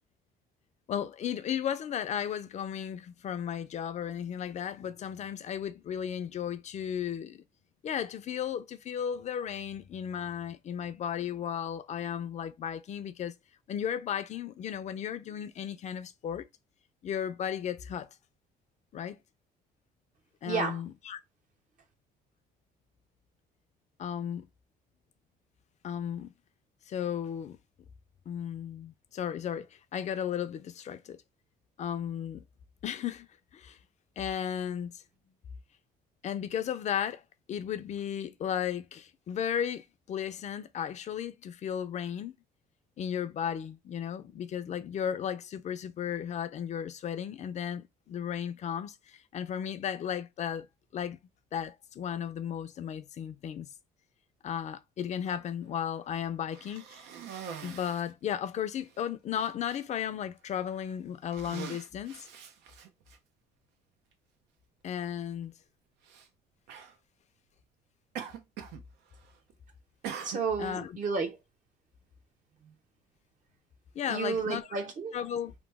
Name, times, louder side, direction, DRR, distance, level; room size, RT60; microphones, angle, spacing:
voice 1, 0.9-7.4 7.8-13.3 13.7-16.5 17.0-18.1 18.9-19.2 20.4-21.2 24.0-24.5 25.8-26.3 26.9-27.6 28.3-31.2 31.8-32.4 32.8-33.3 33.5-33.8 34.2-35.0 36.2-37.2 37.5-42.3 43.0-50.7 50.9-51.2 51.5-53.7 54.4-57.0 57.6-62.3 64.8-65.5 70.6-71.0 73.9-74.8 75.1-75.5, left 9 dB, 45° left, 0.5 m, -35 dB
voice 2, 20.5-20.8 70.2-71.4 74.1-75.2, right 5 dB, 50° right, 0.9 m, -31 dB
Cough, 56.5-58.1 58.9-59.0 59.4-59.8 60.6-60.8 61.2-63.2 64.1-64.2 66.0-66.3 66.7-67.0 68.2-68.8 69.1-69.5 70.0-70.8, right 8 dB, 85° right, 0.7 m, -43 dB
3.0 x 2.1 x 3.4 m
cardioid pair, 110°, 17 cm